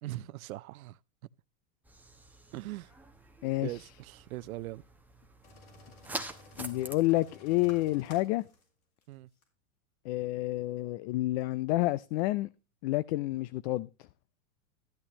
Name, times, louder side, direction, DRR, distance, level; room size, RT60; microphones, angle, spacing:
voice 1, 0.0-1.0 2.5-2.9 3.6-4.8 9.1-9.3, right 16 dB, 80° right, 0.6 m, -40 dB
sound 1, 1.8-7.0, right 2 dB, 5° right, 0.9 m, -45 dB
voice 2, 3.4-3.8 6.6-8.4 10.0-12.5 12.8-13.9, left 18 dB, 50° left, 0.5 m, -29 dB
sound 2, 5.4-8.7 9.0-9.1 9.4-9.5, left 2 dB, 90° left, 4.4 m, -55 dB
13.0 x 8.6 x 3.0 m
hypercardioid pair, 120°, 41 cm